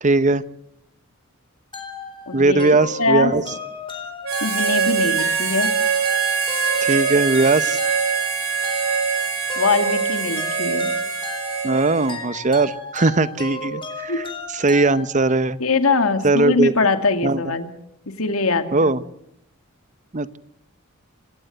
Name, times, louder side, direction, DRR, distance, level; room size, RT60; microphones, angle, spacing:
voice 1, 0.0-0.4 2.3-3.4 6.8-7.8 11.6-15.6 16.2-16.7 17.2-17.4 18.7-19.0 20.1-20.4, right 3 dB, 35° right, 15 dB, 0.8 m, -19 dB
sound 1, 1.7-15.5, left 4 dB, 25° left, 4.0 m, -35 dB
voice 2, 2.3-2.6 3.0-3.3 4.4-5.7 9.6-10.9 14.1-14.2 15.6-17.7 18.1-18.9, left 3 dB, 70° left, 8 dB, 2.3 m, -22 dB
Harmonica, 4.2-12.3, right 6 dB, 70° right, 5.2 m, -23 dB
27.5 x 16.0 x 8.0 m, 0.79 s
head